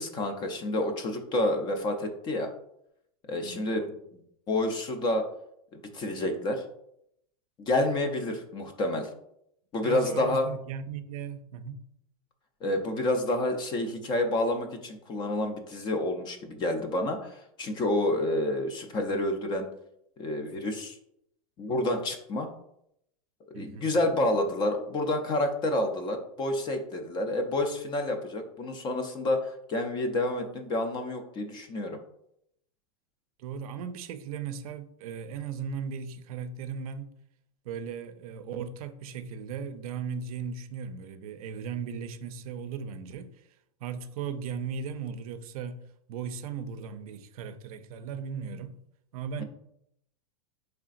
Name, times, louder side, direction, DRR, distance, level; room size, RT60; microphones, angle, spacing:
voice 1, 0.0-2.5 3.3-3.8 4.1-4.2 4.5-5.3 5.7-6.6 7.6-9.1 9.7-10.5 12.6-19.7 20.2-21.0 21.6-22.5 23.6-32.0, left 1 dB, 25° left, 0.4 m, -29 dB
voice 2, 3.3-4.0 9.8-11.8 23.5-23.9 33.4-37.1 37.6-43.5 43.8-45.8 46.1-48.8 49.1-49.4, right 6 dB, 75° right, 0.4 m, -37 dB
3.8 x 3.2 x 2.4 m
supercardioid pair, 145°, 19 cm